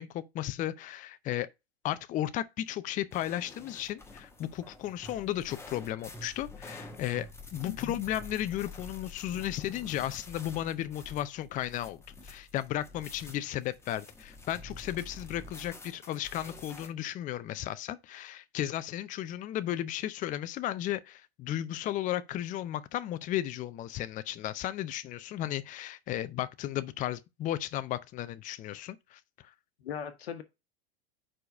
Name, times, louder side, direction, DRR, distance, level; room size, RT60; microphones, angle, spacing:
voice 1, 0.0-1.5 1.8-29.2, left 13 dB, 25° left, 0.5 m, -34 dB
sound 1, 3.1-16.9, left 2 dB, 10° left, 1.3 m, -48 dB
voice 2, 7.7-8.0 29.8-30.4, left 7 dB, 75° left, 1.1 m, -39 dB
5.0 x 4.6 x 4.8 m
hypercardioid pair, 95°, 31 cm